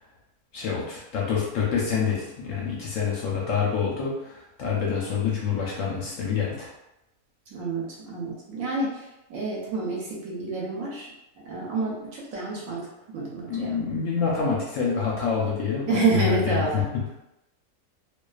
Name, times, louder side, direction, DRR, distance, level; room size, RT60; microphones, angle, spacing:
voice 1, 0.5-6.7 13.5-17.0, left 6 dB, 70° left, -4 dB, 0.8 m, -27 dB
voice 2, 7.5-9.0 9.3-11.1 11.5-12.8 13.1-13.7 15.9-16.9, right 3 dB, 70° right, -4 dB, 0.9 m, -28 dB
2.3 x 2.3 x 2.3 m, 0.88 s
omnidirectional pair, 1.6 m